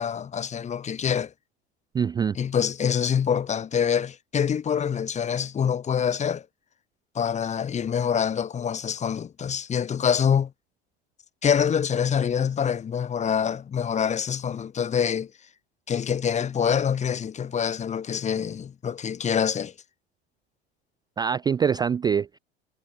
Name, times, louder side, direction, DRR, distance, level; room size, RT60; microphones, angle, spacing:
voice 1, 0.0-1.3 2.3-6.5 7.1-10.5 11.4-15.3 15.9-19.7, left 7 dB, 20° left, 1.0 m, -25 dB
voice 2, 1.9-2.4 21.2-22.4, right 7 dB, 15° right, 0.4 m, -24 dB
hypercardioid pair, 90°, 31 cm